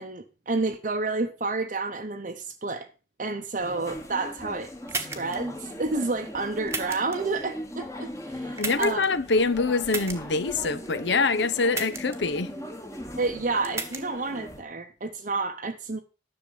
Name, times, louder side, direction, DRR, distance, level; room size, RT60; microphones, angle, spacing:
voice 1, 0.0-2.9 3.2-9.1 13.2-16.0, right 3 dB, 45° right, 0.8 m, -30 dB
sound 1, 3.6-14.6, left 1 dB, 15° left, 1.2 m, -39 dB
sound 2, 4.9-5.4 6.7-7.2 8.6-9.1 9.9-10.2 11.7-12.2 13.6-14.0, right 4 dB, 15° right, 1.1 m, -32 dB
voice 2, 8.6-12.5, left 3 dB, 70° left, 0.8 m, -25 dB
10.5 x 6.5 x 5.5 m
head